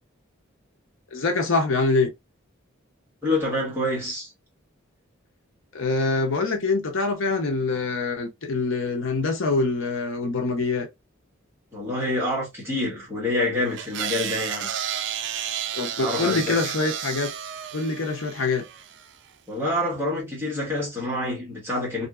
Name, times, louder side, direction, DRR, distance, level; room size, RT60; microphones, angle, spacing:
voice 1, 1.1-2.1 5.7-10.9 15.7-17.3 17.7-18.6, left 3 dB, 70° left, 0.7 m, -24 dB
voice 2, 3.2-4.3 11.7-14.7 16.0-16.6 19.5-22.1, left 1 dB, 10° right, 1.3 m, -27 dB
sound 1, 13.8-19.1, right 9 dB, 55° right, 0.3 m, -32 dB
2.8 x 2.7 x 2.4 m
head